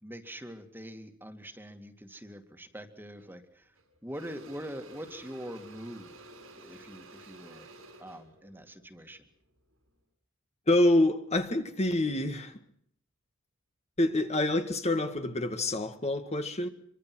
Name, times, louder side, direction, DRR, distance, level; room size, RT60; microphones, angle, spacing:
voice 1, 0.0-3.7 4.0-6.2 6.5-7.7 8.0-9.3, equal, 10° right, 2.3 m, -44 dB
Engine / Drill, 3.2-3.4 3.7-9.9, right 2 dB, 90° right, 6.6 m, -52 dB
voice 2, 10.7-12.6 14.0-16.7, left 1 dB, 35° left, 1.9 m, -27 dB
25.5 x 24.0 x 6.2 m
head